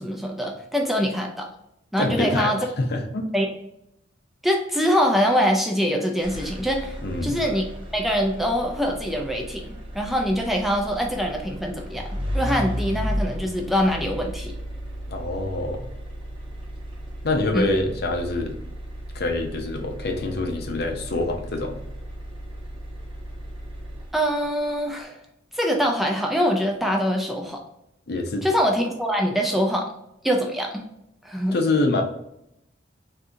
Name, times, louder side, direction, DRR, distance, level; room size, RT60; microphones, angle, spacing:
voice 1, 0.0-1.5 1.9-2.6 3.3-3.5 4.4-7.6 7.9-9.6 9.9-12.0 12.3-14.5 17.5-17.6 24.1-25.2 25.5-27.6 28.4-29.9 30.2-30.8 31.2-31.6, equal, ahead, 1 dB, 0.4 m, -24 dB
voice 2, 2.0-3.3 7.0-7.4 15.1-15.9 17.2-18.6 19.1-21.8 28.1-28.4 31.5-32.0, left 2 dB, 60° left, 4 dB, 0.6 m, -25 dB
sound 1, 6.2-24.5, equal, 30° right, 0.8 m, -34 dB
3.6 x 2.7 x 2.6 m, 0.81 s
head